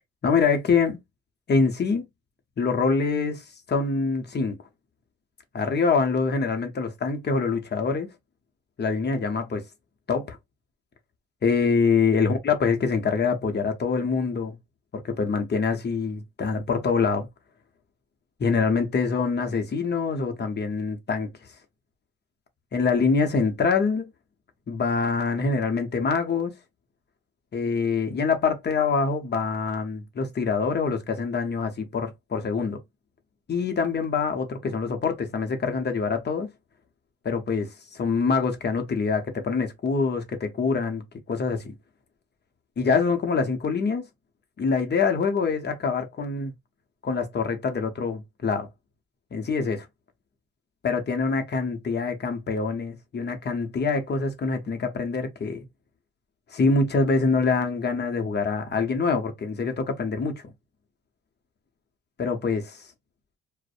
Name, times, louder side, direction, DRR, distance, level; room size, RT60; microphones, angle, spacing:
voice 1, 0.2-1.0 1.5-2.0 2.6-4.6 5.5-8.1 8.8-9.6 10.1-10.4 11.4-14.6 15.0-17.3 18.4-21.3 22.7-24.1 24.7-26.5 27.5-32.8 33.5-36.5 37.2-41.0 41.3-41.7 42.8-44.1 44.6-46.5 47.0-48.7 49.3-49.9 50.8-55.6 56.5-60.4 62.2-62.8, left 4 dB, 35° left, 0.7 m, -25 dB
2.5 x 2.0 x 2.4 m
cardioid pair, 90°, 30 cm